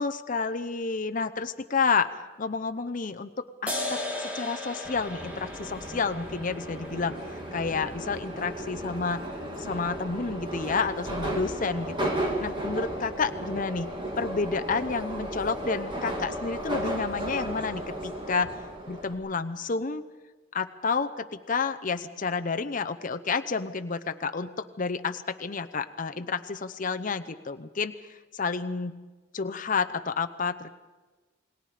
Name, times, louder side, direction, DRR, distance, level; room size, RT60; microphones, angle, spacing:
voice 1, 0.0-3.3 3.6-9.2 9.6-13.9 14.2-18.5 18.9-20.0 20.5-29.0 29.3-30.7, left 4 dB, 40° left, 9 dB, 0.7 m, -30 dB
sound 1, 3.7-10.6, left 1 dB, 5° right, 2.4 m, -38 dB
Subway metro underground, 4.8-19.1, right 1 dB, 25° right, 2.8 m, -34 dB
28.5 x 20.0 x 5.0 m, 1.3 s
head